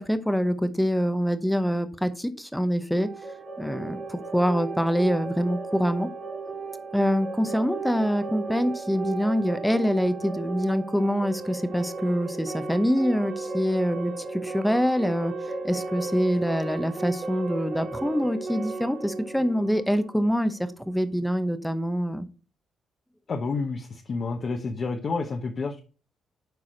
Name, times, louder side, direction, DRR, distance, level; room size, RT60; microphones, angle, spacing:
voice 1, 0.0-3.1 3.6-6.1 6.9-22.3, equal, 5° left, 10 dB, 0.8 m, -25 dB
sound 1, 3.0-20.7, right 4 dB, 50° right, 2.9 m, -35 dB
voice 2, 23.3-25.8, left 4 dB, 45° left, 2 dB, 0.9 m, -29 dB
7.9 x 4.7 x 4.4 m, 0.36 s
cardioid pair, 90°, 0 cm